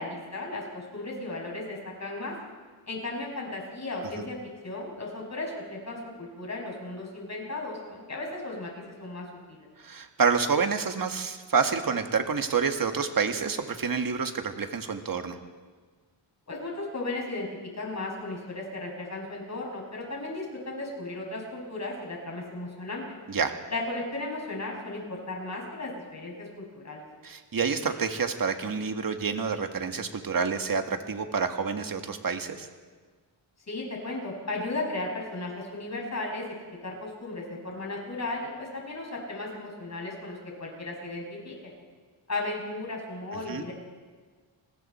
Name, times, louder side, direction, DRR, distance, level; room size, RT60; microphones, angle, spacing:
voice 1, 0.0-2.4 2.9-4.4 4.6-9.7 16.5-23.0 23.7-27.0 33.7-36.5 36.8-41.7 42.3-43.7, left 2 dB, 35° left, -1 dB, 7.0 m, -35 dB
voice 2, 9.8-15.4 23.3-23.5 27.2-32.7 43.5-43.6, right 5 dB, 45° right, 6 dB, 1.8 m, -28 dB
29.5 x 20.5 x 4.4 m, 1.5 s
wide cardioid pair, 100°, 46 cm